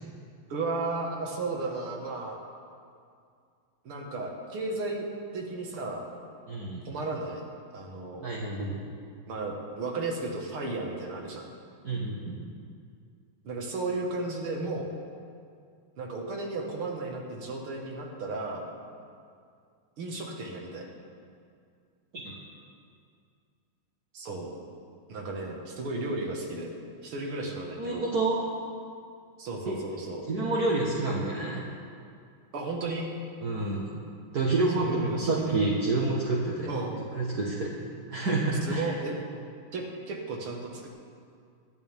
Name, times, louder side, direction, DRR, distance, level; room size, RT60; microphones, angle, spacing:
voice 1, 0.5-2.4 3.8-5.1 5.3-6.0 6.9-7.5 7.7-8.2 9.3-11.5 13.4-14.9 16.0-18.7 20.0-20.9 24.1-24.5 25.1-26.7 27.0-28.1 29.4-30.3 32.5-33.1 34.8-35.6 36.7-37.0 38.7-39.2 39.7-40.9, right 3 dB, 90° right, 0 dB, 2.6 m, -34 dB
voice 2, 6.5-6.8 8.2-8.8 11.8-12.2 22.1-22.3 27.8-28.4 29.7-29.8 30.3-31.6 33.4-33.9 34.3-36.7 37.1-37.7 38.1-38.8, right 2 dB, 50° right, -5 dB, 1.9 m, -28 dB
25.0 x 10.0 x 3.6 m, 2.3 s
omnidirectional pair, 2.3 m